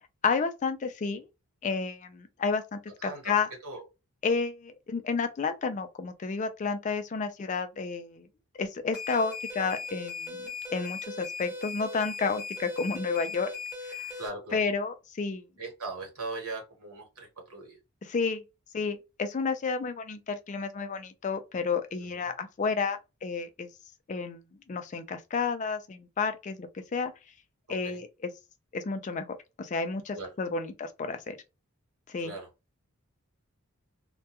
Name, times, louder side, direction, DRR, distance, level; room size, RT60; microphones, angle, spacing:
voice 1, 0.2-1.2 1.6-3.5 4.2-8.3 8.6-13.5 13.8-14.1 14.5-15.4 18.0-18.4 18.7-23.7 24.1-24.4 24.7-27.1 27.7-28.1 28.7-31.4 32.1-32.3, left 5 dB, 35° left, 0.3 m, -31 dB
voice 2, 2.9-3.3 3.6-3.8 14.2-14.6 15.6-17.8 22.0-22.3 27.8-28.0 30.1-30.3 32.2-32.5, right 3 dB, 75° right, 1.1 m, -39 dB
sound 1, 8.9-14.3, left 4 dB, ahead, 1.0 m, -38 dB
2.2 x 2.2 x 2.8 m
head